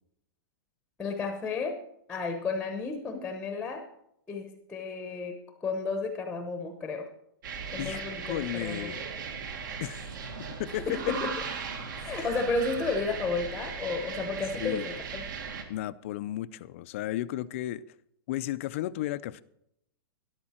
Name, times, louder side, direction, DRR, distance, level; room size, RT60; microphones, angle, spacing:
voice 1, 1.0-1.8 2.1-3.9 4.3-7.1 7.7-8.9 10.9-11.3 12.0-15.2, left 3 dB, 5° left, 0.9 m, -32 dB
sound 1, 7.4-15.6, right 5 dB, 60° right, 1.9 m, -38 dB
voice 2, 8.3-9.1 9.8-10.0 10.6-11.0 12.2-12.3 14.6-14.9 15.7-17.8 18.3-19.4, left 14 dB, 35° left, 0.4 m, -34 dB
13.0 x 11.5 x 4.3 m
supercardioid pair, 175°, 12 cm